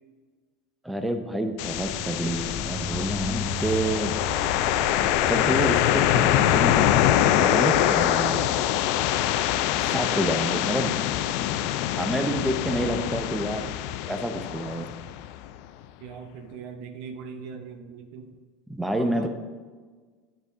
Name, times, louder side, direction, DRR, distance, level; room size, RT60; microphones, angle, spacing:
voice 1, 0.8-4.1 5.3-8.5 9.8-10.9 12.0-13.7 14.1-14.9 18.7-19.3, right 1 dB, 5° right, 6 dB, 0.7 m, -28 dB
sound 1, 1.6-15.5, left 12 dB, 65° left, 0.3 m, -24 dB
sound 2, 1.7-7.3, equal, 20° left, 1.2 m, -36 dB
voice 2, 16.0-18.3 18.9-19.3, right 6 dB, 65° right, 6 dB, 0.7 m, -40 dB
8.3 x 5.5 x 3.6 m, 1.4 s
hypercardioid pair, 90°, 0 cm